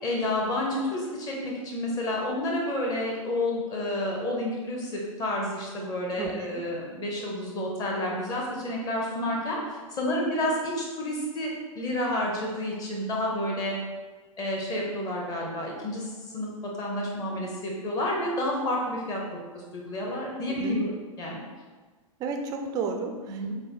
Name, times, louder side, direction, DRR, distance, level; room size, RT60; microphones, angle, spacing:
voice 1, 0.0-13.8 14.4-19.2 19.5-21.4 23.3-23.5, left 1 dB, 20° left, -1 dB, 1.0 m, -30 dB
voice 2, 6.2-6.6 20.5-20.8 22.2-23.5, right 4 dB, 20° right, 5 dB, 0.4 m, -33 dB
6.2 x 2.7 x 3.1 m, 1.4 s
figure-of-eight pair, 105°, 18 cm